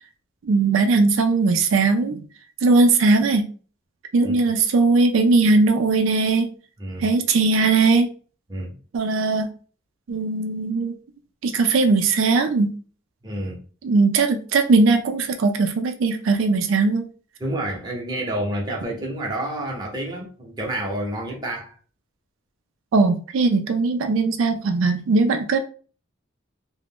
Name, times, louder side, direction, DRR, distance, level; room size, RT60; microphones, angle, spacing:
voice 1, 0.4-2.2 2.6-3.5 4.1-6.5 7.0-8.1 8.9-9.5 10.1-10.9 11.4-12.7 13.8-17.1 22.9-25.6, right 3 dB, 85° right, 0.4 m, -19 dB
voice 2, 13.2-13.6 17.4-21.7, right 1 dB, 20° right, 0.7 m, -29 dB
2.4 x 2.1 x 3.4 m
head